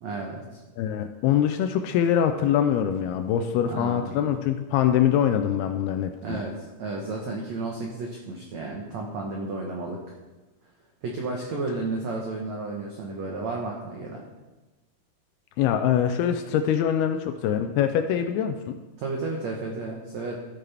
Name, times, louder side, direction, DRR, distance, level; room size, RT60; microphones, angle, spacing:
voice 1, 0.0-0.6 3.7-4.1 6.2-10.0 11.0-14.2 19.0-20.4, right 3 dB, 85° right, 0 dB, 1.5 m, -32 dB
voice 2, 0.8-6.4 15.6-18.8, left 9 dB, 80° left, 7 dB, 2.3 m, -24 dB
13.5 x 8.4 x 3.4 m, 1.1 s
omnidirectional pair, 4.8 m